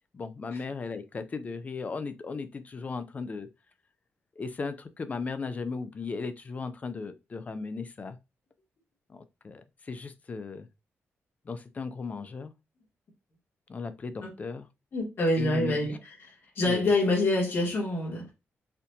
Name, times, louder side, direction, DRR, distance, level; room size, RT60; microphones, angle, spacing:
voice 1, 0.1-3.5 4.4-8.2 9.1-10.7 11.5-12.5 13.7-14.7 15.4-15.8 16.6-16.9, left 4 dB, 30° left, 0.4 m, -36 dB
voice 2, 14.9-18.3, left 2 dB, 50° left, 1.5 m, -27 dB
4.2 x 2.5 x 2.7 m
wide cardioid pair, 135°, 5 cm